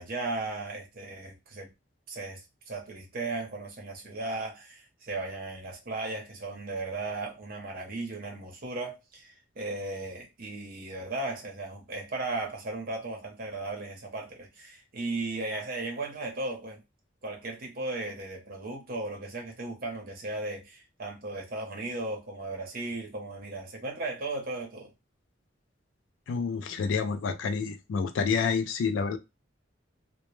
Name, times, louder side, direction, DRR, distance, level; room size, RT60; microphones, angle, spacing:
voice 1, 0.0-1.7 2.1-16.8 17.2-24.9, right 2 dB, 50° right, 0.7 m, -36 dB
voice 2, 26.3-29.2, left 5 dB, 75° left, 0.3 m, -28 dB
2.1 x 2.0 x 3.0 m
head